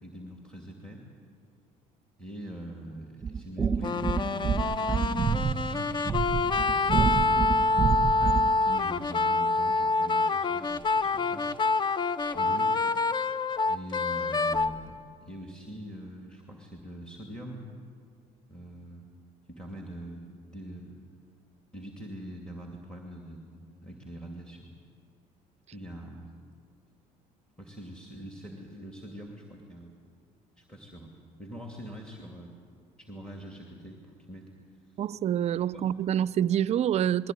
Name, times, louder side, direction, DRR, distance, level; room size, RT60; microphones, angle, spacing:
voice 1, 0.0-1.0 2.2-7.8 8.6-11.5 12.3-12.7 13.3-13.4 13.7-17.7 18.5-19.1 19.5-21.0 21.7-24.7 25.7-26.3 27.6-30.0 30.6-31.1 31.4-32.5 33.0-34.5 35.7-35.8, right 1 dB, 5° left, 2.5 m, -43 dB
sound 1, 3.2-8.6, right 6 dB, 25° right, 1.0 m, -28 dB
sound 2, 3.8-14.8, left 3 dB, 30° left, 0.6 m, -26 dB
voice 2, 35.0-37.3, right 10 dB, 50° right, 0.4 m, -26 dB
21.5 x 16.0 x 9.3 m
cardioid pair, 105°, 15 cm